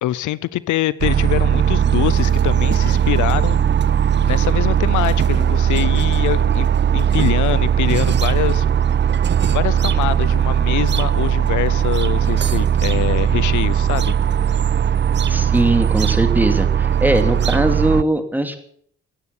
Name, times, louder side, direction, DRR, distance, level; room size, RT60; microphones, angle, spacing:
voice 1, 0.0-3.6 4.2-8.7 9.5-14.2, left 15 dB, 80° left, 0.7 m, -24 dB
sound 1, 1.0-18.0, right 8 dB, 35° right, 0.6 m, -18 dB
voice 2, 15.3-18.6, right 1 dB, 5° right, 2.7 m, -20 dB
16.5 x 9.6 x 8.5 m
cardioid pair, 90°, 30 cm